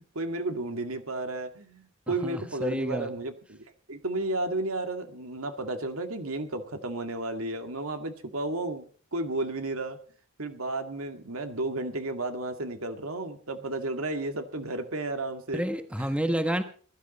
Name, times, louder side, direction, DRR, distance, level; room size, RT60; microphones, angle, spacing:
voice 1, 0.2-8.8 9.1-10.0 10.4-15.6 16.0-16.1, right 2 dB, 80° right, 6 dB, 2.1 m, -33 dB
voice 2, 2.1-3.1 15.5-16.6, right 1 dB, 5° right, 8 dB, 1.2 m, -29 dB
21.5 x 12.5 x 4.1 m, 0.42 s
head